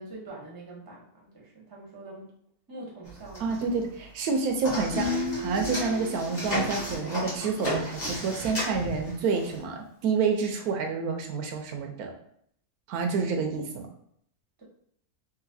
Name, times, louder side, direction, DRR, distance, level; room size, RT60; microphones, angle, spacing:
voice 1, 0.0-2.3 2.7-3.5 14.6-14.7, right 2 dB, 20° right, -3 dB, 0.7 m, -44 dB
sound 1, 3.0-3.9 4.2-9.6, equal, 30° left, 1.4 m, -34 dB
voice 2, 3.4-12.1 12.9-13.9, right 5 dB, 80° right, 4 dB, 1.1 m, -28 dB
Guitar, 4.9-8.6, left 3 dB, 75° left, 1.3 m, -35 dB
3.9 x 2.5 x 2.6 m, 0.67 s
omnidirectional pair, 1.6 m